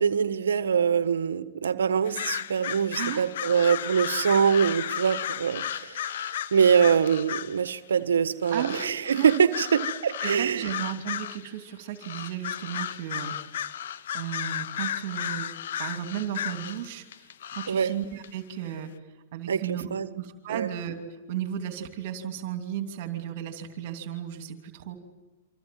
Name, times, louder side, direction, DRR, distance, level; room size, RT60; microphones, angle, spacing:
voice 1, 0.0-10.7 17.7-17.9 19.5-20.1 20.5-20.7, right 7 dB, 85° right, 12 dB, 1.4 m, -24 dB
sound 1, 2.0-7.7 8.4-11.5 12.0-17.9 18.2-18.3, left 10 dB, 70° left, 0.9 m, -34 dB
voice 2, 2.9-3.3 8.5-8.8 9.2-9.3 10.2-13.3 14.1-15.5 15.8-18.9 19.3-19.9 20.1-20.9 21.3-25.0, right 10 dB, 55° right, 6 dB, 2.8 m, -34 dB
27.5 x 26.0 x 7.7 m, 1.2 s
hypercardioid pair, 130°, 0 cm